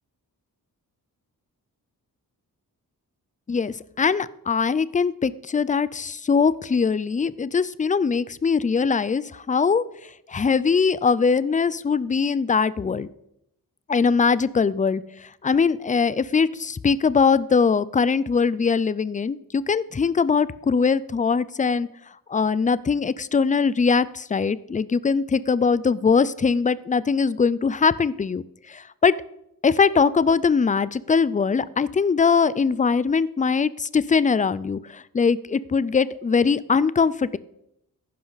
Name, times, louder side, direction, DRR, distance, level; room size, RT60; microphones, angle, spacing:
voice 1, 3.5-9.8 10.3-13.1 13.9-15.0 15.4-21.9 22.3-28.4 28.7-29.1 29.6-37.4, left 5 dB, 20° left, 18 dB, 0.4 m, -21 dB
14.5 x 11.0 x 4.0 m, 0.78 s
wide cardioid pair, 125°, 35 cm